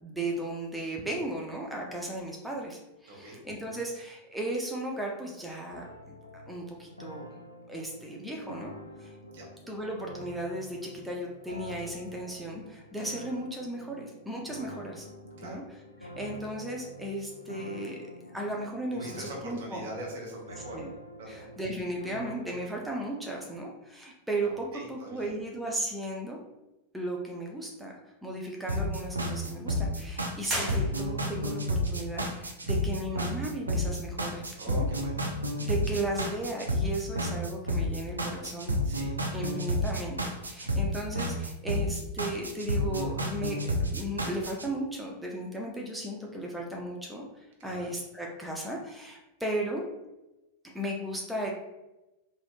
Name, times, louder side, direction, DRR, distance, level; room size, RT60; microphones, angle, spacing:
voice 1, 0.0-6.1 6.5-7.3 7.7-8.7 9.0-9.2 9.7-15.1 15.4-15.6 16.0-19.9 20.7-20.9 21.3-26.4 26.9-27.9 28.2-34.9 35.6-38.8 39.3-49.8 50.7-51.5, right 1 dB, 5° right, -1 dB, 0.5 m, -36 dB
voice 2, 3.1-3.4 3.7-3.8 9.3-9.5 15.4-15.6 18.9-20.8 21.2-21.5 24.4-25.3 34.5-35.2 38.8-39.5 47.6-47.9, right 1 dB, 55° right, -1 dB, 1.0 m, -42 dB
sound 1, 5.7-22.8, equal, 85° left, 0.3 m, -47 dB
sound 2, 28.7-44.7, equal, 80° right, 0.4 m, -30 dB
sound 3, 30.4-31.5, right 1 dB, 25° right, 1.2 m, -35 dB
4.1 x 2.7 x 2.4 m, 0.99 s
figure-of-eight pair, 90°, 0 cm